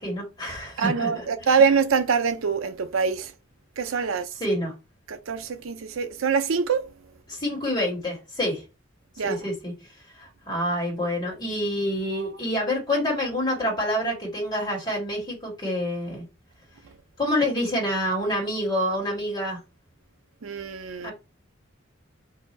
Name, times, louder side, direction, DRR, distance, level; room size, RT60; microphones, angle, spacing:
voice 1, 0.0-1.6 4.4-4.7 7.3-8.6 9.2-9.7 10.2-16.2 17.2-19.6 21.0-21.1, left 1 dB, 20° left, 1.8 m, -27 dB
voice 2, 0.8-3.3 3.8-4.3 5.1-6.9 9.2-9.4 20.4-21.1, right 5 dB, 85° right, 0.5 m, -24 dB
2.7 x 2.6 x 4.2 m
head